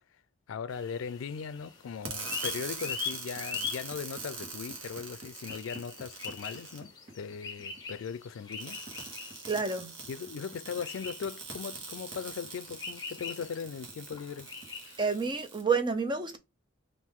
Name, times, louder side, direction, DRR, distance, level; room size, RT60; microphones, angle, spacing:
voice 1, 0.5-8.8 10.1-14.5, left 6 dB, 90° left, 0.4 m, -39 dB
sound 1, 0.7-15.2, left 5 dB, 20° left, 1.2 m, -42 dB
sound 2, 2.0-6.8 8.5-15.6, right 4 dB, 70° right, 1.2 m, -43 dB
sound 3, 2.3-14.7, right 1 dB, 40° right, 1.2 m, -52 dB
voice 2, 9.4-9.9 15.0-16.4, right 4 dB, 25° right, 0.6 m, -29 dB
4.5 x 2.6 x 3.6 m
head